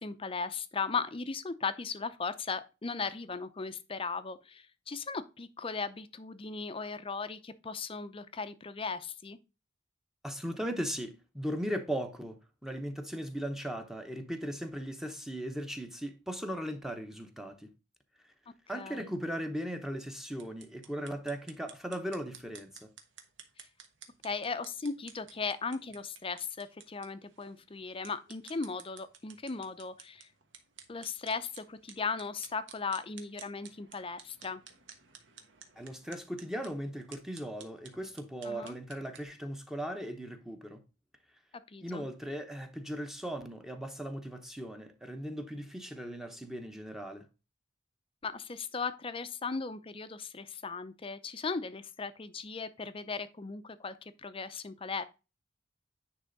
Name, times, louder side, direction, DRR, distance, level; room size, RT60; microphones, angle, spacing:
voice 1, 0.0-9.4 18.7-19.1 24.2-30.3 30.9-34.6 38.4-38.8 41.7-42.1 48.2-55.0, left 4 dB, 30° left, 0.6 m, -37 dB
voice 2, 10.2-12.4 12.6-17.7 18.7-22.9 35.8-40.8 41.8-47.2, equal, ahead, 0.9 m, -38 dB
sound 1, 20.3-39.3, right 7 dB, 75° right, 1.3 m, -54 dB
9.9 x 3.4 x 4.0 m
head